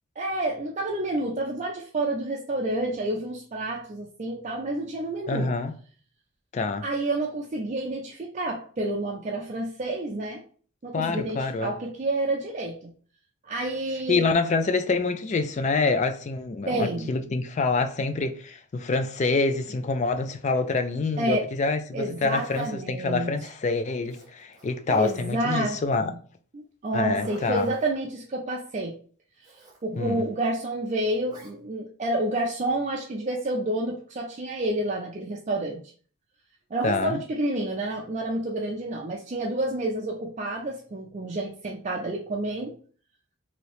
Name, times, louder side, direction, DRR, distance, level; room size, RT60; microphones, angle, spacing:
voice 1, 0.2-5.5 6.8-10.4 10.8-12.9 13.4-14.3 16.7-17.1 21.2-21.4 21.9-23.3 24.9-26.2 26.5-29.0 29.8-35.8 36.7-42.7, right 1 dB, 35° right, 0.4 m, -29 dB
voice 2, 5.3-5.7 6.5-6.8 10.9-11.7 14.1-26.1 26.9-27.7 29.9-30.3 36.8-37.2, left 3 dB, 35° left, 0.3 m, -26 dB
Zipper (clothing), 21.9-22.7 24.0-25.4 26.9-27.9 29.4-29.8 31.3-31.5, right 2 dB, 20° right, 0.9 m, -48 dB
3.1 x 2.7 x 3.0 m
head